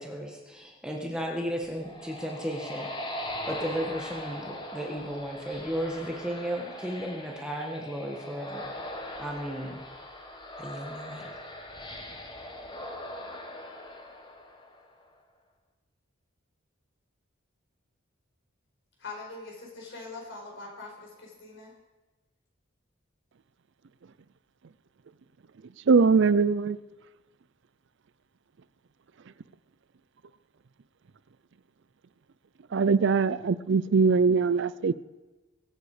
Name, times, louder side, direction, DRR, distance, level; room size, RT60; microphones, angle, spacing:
voice 1, 0.0-2.9 3.4-8.8 9.2-9.9 10.6-11.3, equal, 5° right, -1 dB, 1.6 m, -34 dB
sound 1, 1.5-15.0, left 1 dB, 25° left, 1.5 m, -40 dB
voice 2, 19.0-21.7, left 3 dB, 65° left, 0 dB, 4.7 m, -42 dB
voice 3, 25.9-26.8 32.7-34.9, right 5 dB, 60° right, 16 dB, 0.5 m, -22 dB
23.0 x 8.4 x 5.0 m, 1.1 s
head